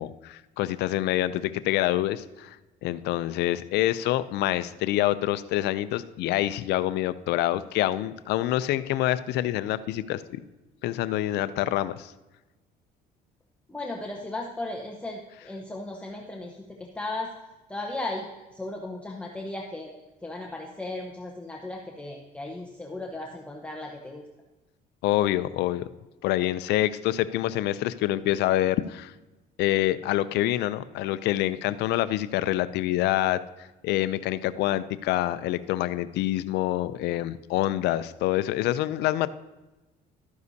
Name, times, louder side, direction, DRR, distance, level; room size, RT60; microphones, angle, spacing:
voice 1, 0.0-2.6 2.8-10.2 10.8-12.1 25.0-25.8 26.2-29.1 29.6-33.4 33.8-39.3, left 14 dB, 80° left, 14 dB, 0.4 m, -26 dB
voice 2, 13.7-17.3 17.7-18.3 18.5-24.2, left 2 dB, 5° left, 0 dB, 0.9 m, -36 dB
12.5 x 9.5 x 2.7 m, 1.1 s
cardioid pair, 110°, 17 cm